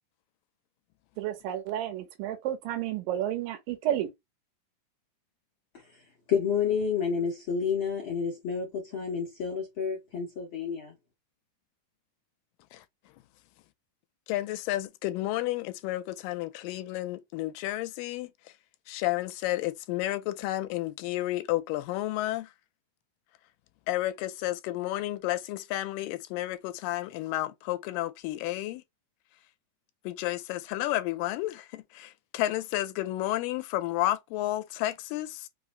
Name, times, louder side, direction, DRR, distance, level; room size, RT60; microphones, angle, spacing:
voice 1, 1.2-4.1, right 11 dB, 85° right, 2.6 m, -31 dB
voice 2, 6.3-10.9, left 6 dB, 60° left, 1.3 m, -29 dB
voice 3, 14.3-18.3 18.9-22.5 23.9-28.8 30.1-35.5, left 16 dB, 85° left, 2.2 m, -31 dB
5.4 x 2.0 x 3.1 m
omnidirectional pair, 3.9 m